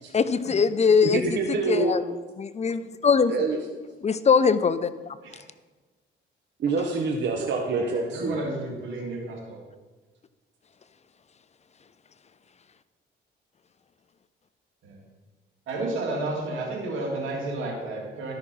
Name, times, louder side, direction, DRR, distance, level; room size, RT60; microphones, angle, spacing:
voice 1, 0.1-1.2 1.7-2.0 2.4-3.3 4.0-5.2, left 6 dB, 35° left, 14 dB, 0.5 m, -21 dB
voice 2, 1.0-1.9 3.3-3.6 6.6-8.4, right 3 dB, 65° right, 1 dB, 1.3 m, -26 dB
voice 3, 7.6-9.6 14.8-15.0 15.7-18.3, right 2 dB, 80° right, -1 dB, 3.2 m, -32 dB
13.0 x 5.9 x 5.6 m, 1.3 s
cardioid pair, 90°, 20 cm